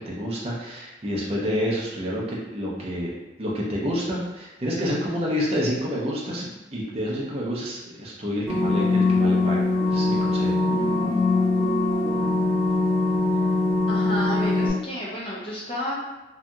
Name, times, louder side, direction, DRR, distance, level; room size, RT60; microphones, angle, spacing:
voice 1, 0.0-3.1 3.4-10.6, equal, 30° right, -4 dB, 0.5 m, -28 dB
sound 1, 8.5-14.7, left 3 dB, ahead, 1.3 m, -22 dB
voice 2, 13.9-16.0, equal, 30° left, -5 dB, 0.5 m, -31 dB
2.7 x 2.6 x 2.3 m, 1.1 s
head